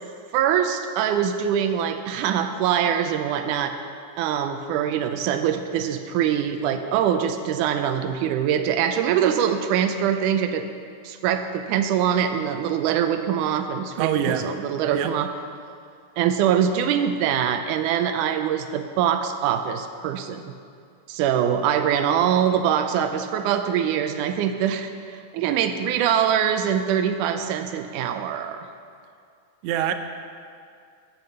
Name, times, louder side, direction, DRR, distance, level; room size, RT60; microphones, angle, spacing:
voice 1, 0.3-3.8 4.2-10.7 11.0-15.3 16.2-20.5 21.1-28.7, right 9 dB, 90° right, 8 dB, 2.1 m, -23 dB
voice 2, 14.0-14.5 14.9-15.1 29.6-29.9, right 9 dB, 75° right, 8 dB, 1.9 m, -24 dB
13.0 x 7.4 x 7.9 m, 2.3 s
omnidirectional pair, 3.6 m